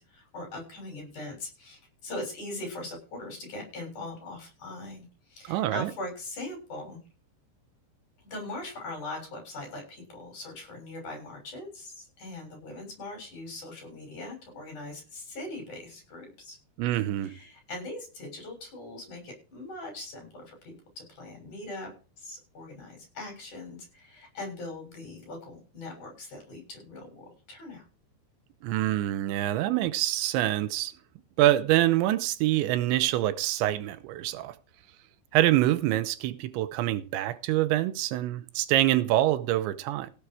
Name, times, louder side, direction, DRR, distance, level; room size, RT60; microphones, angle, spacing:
voice 1, 0.0-7.0 8.2-16.6 17.2-21.9 22.2-27.8, left 2 dB, 40° left, 8.1 m, -41 dB
voice 2, 5.5-5.9 16.8-17.3 28.6-30.9 31.4-34.5 35.3-40.1, right 14 dB, 85° right, 3.1 m, -25 dB
17.0 x 7.4 x 4.8 m
omnidirectional pair, 5.2 m